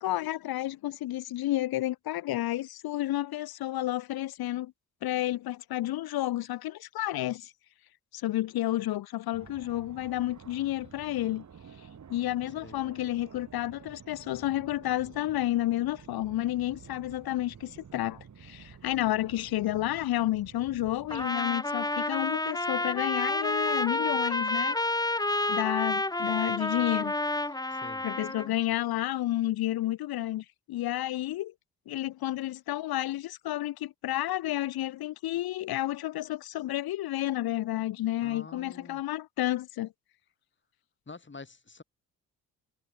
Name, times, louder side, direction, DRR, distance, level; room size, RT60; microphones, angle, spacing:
voice 1, 0.0-4.7 5.0-7.5 8.1-11.4 12.1-25.1 25.5-27.1 28.0-31.5 31.9-39.9, left 15 dB, 65° left, 1.1 m, -31 dB
Fixed-wing aircraft airplane, 9.3-21.3, right 7 dB, 45° right, 2.9 m, -50 dB
Trumpet, 21.1-28.5, left 2 dB, 10° left, 1.4 m, -29 dB
voice 2, 27.7-28.1 38.2-39.0 41.1-41.8, left 4 dB, 30° left, 4.3 m, -47 dB
hypercardioid pair, 45°, 40 cm